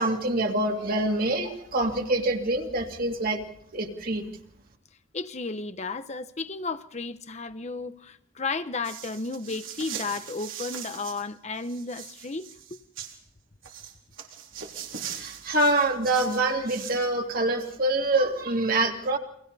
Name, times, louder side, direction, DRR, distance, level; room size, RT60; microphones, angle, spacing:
voice 1, 0.0-3.4 3.7-4.3 15.2-19.2, right 2 dB, 45° right, 2.5 m, -25 dB
voice 2, 5.1-12.8, left 3 dB, 35° left, 0.8 m, -33 dB
sound 1, 8.8-11.2 11.5-13.2 13.6-17.1, right 8 dB, 85° right, 3.8 m, -40 dB
29.5 x 24.5 x 4.1 m
head